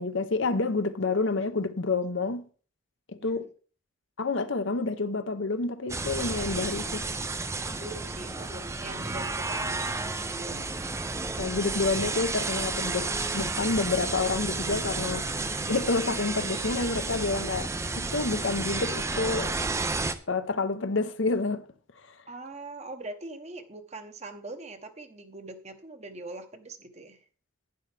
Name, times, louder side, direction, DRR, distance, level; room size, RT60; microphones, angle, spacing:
voice 1, 0.0-2.4 3.1-3.4 4.2-7.1 11.4-15.3 15.7-19.5 20.3-21.6 22.1-22.2, left 3 dB, 60° left, 0.8 m, -29 dB
sound 1, 5.9-20.1, right 3 dB, 15° right, 0.5 m, -31 dB
voice 2, 7.6-10.7 22.3-27.2, right 2 dB, 30° right, 1.0 m, -42 dB
11.5 x 9.9 x 3.3 m
head